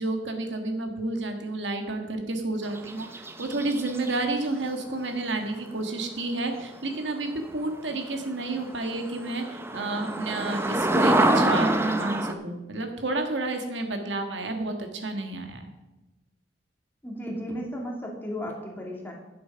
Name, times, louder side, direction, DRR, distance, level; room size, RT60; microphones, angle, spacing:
voice 1, 0.0-15.7, right 2 dB, 85° right, 5 dB, 1.6 m, -30 dB
sound 1, 2.6-4.1 7.7-7.8 8.3-8.4 8.6-12.3, right 1 dB, 15° right, 0.7 m, -25 dB
voice 2, 17.0-19.1, equal, 10° left, -1 dB, 2.3 m, -34 dB
11.0 x 7.7 x 5.7 m, 1.0 s
head